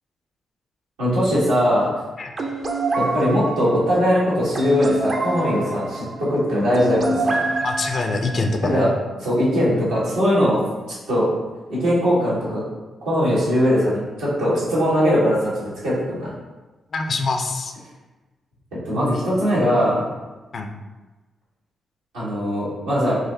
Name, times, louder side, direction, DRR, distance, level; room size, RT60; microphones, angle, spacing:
voice 1, 1.0-1.9 2.9-7.5 8.6-8.9 9.2-10.6 11.1-11.3 11.7-12.6 13.0-16.3 18.8-20.1 22.1-23.2, equal, 90° right, -10 dB, 1.4 m, -20 dB
sound 1, 2.3-8.6, right 2 dB, 50° right, 0.5 m, -26 dB
voice 2, 7.6-8.9 16.9-17.7 20.5-20.7, left 3 dB, 60° left, 5 dB, 0.4 m, -24 dB
4.1 x 2.6 x 2.7 m, 1.2 s
hypercardioid pair, 45°, 0 cm